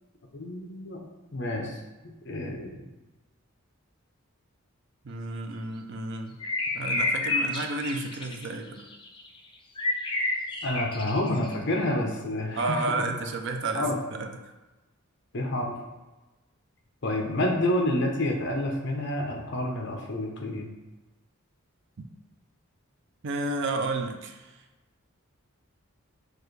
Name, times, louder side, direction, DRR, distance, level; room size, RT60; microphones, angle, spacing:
voice 1, 0.3-1.1 1.3-1.8 2.0-2.8 10.6-12.8 13.7-13.9 15.3-15.7 17.0-20.7, left 1 dB, 55° left, 1 dB, 0.8 m, -29 dB
voice 2, 5.0-6.4 6.7-8.9 12.6-14.5 23.2-24.6, right 2 dB, 55° right, 5 dB, 0.4 m, -31 dB
sound 1, 6.4-9.4 9.8-11.5, left 2 dB, 20° left, 0.4 m, -29 dB
6.3 x 2.5 x 3.3 m, 1.1 s
head